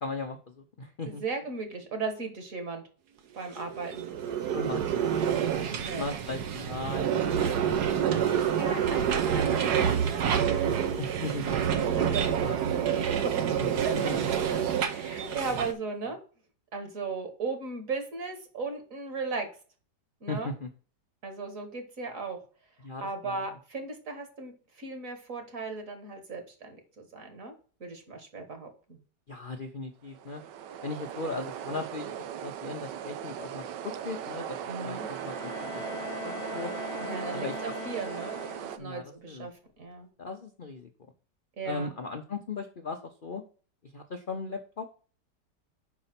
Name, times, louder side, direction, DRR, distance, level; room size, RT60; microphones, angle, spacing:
voice 1, 0.0-1.2 4.5-4.8 5.1-5.5 5.8-8.3 11.0-11.8 12.4-12.6 13.6-14.3 15.4-15.6 20.3-20.7 22.8-23.5 29.3-30.4 30.8-34.6 34.8-35.8 36.2-36.7 37.3-37.5 38.8-39.5 40.2-40.9 41.6-43.4 43.8-44.9, left 3 dB, 50° left, 4 dB, 0.6 m, -38 dB
voice 2, 1.0-2.8 3.3-4.1 5.7-6.1 8.1-10.6 12.0-13.6 13.8-13.9 14.9-16.2 16.7-19.5 20.2-20.5 21.2-22.4 23.0-27.5 27.8-29.0 34.7-35.1 37.0-40.1 41.6-41.9, right 4 dB, 50° right, 6 dB, 1.9 m, -37 dB
sound 1, 3.6-15.7, right 8 dB, 70° right, 1.4 m, -28 dB
sound 2, 30.1-38.8, right 9 dB, 85° right, 1.3 m, -38 dB
Bowed string instrument, 34.9-39.0, left 9 dB, 65° left, 1.4 m, -42 dB
5.4 x 4.9 x 5.8 m, 0.39 s
omnidirectional pair, 1.8 m